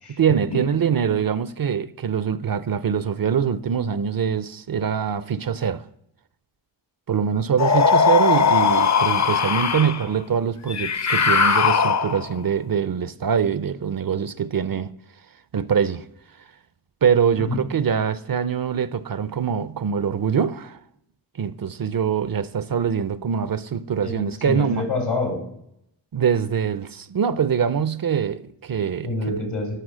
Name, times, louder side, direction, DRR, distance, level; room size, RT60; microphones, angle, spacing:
voice 1, 0.1-5.9 7.1-14.9 15.5-16.1 17.0-20.8 21.3-24.9 26.1-29.4, right 7 dB, 45° right, 0.5 m, -23 dB
sound 1, 7.6-10.0 10.7-12.4, left 5 dB, 35° left, 0.6 m, -19 dB
voice 2, 24.0-25.4 29.0-29.8, left 2 dB, 85° left, 3.4 m, -27 dB
11.5 x 6.0 x 6.2 m
wide cardioid pair, 85°, 49 cm